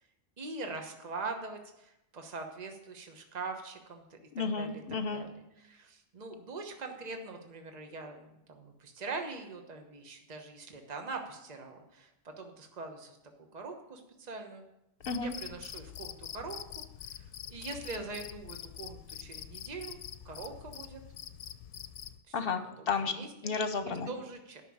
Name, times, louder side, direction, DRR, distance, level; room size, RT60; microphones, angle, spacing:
voice 1, 0.4-4.2 4.6-4.8 5.1-5.3 5.6-13.2 13.5-14.6 15.2-16.8 17.1-20.0 20.2-21.0 22.3-22.4 22.8-23.5 24.1-24.6, right 3 dB, 35° right, 4 dB, 1.2 m, -42 dB
voice 2, 4.3-5.2 15.1-15.3 22.3-23.1 23.4-24.1, left 5 dB, 55° left, 8 dB, 1.0 m, -32 dB
Cricket, 15.0-22.2, left 9 dB, 85° left, 0.9 m, -45 dB
9.9 x 6.0 x 8.7 m, 0.88 s
omnidirectional pair, 1.2 m